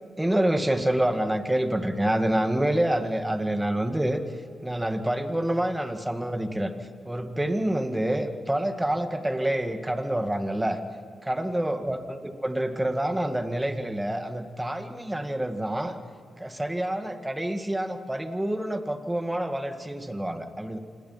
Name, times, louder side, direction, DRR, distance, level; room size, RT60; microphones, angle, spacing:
voice 1, 0.2-4.2 4.6-6.7 7.0-10.8 11.2-16.0 16.4-20.8, right 1 dB, 10° right, 7 dB, 1.9 m, -27 dB
27.0 x 20.5 x 5.8 m, 2.4 s
cardioid pair, 95°, 0 cm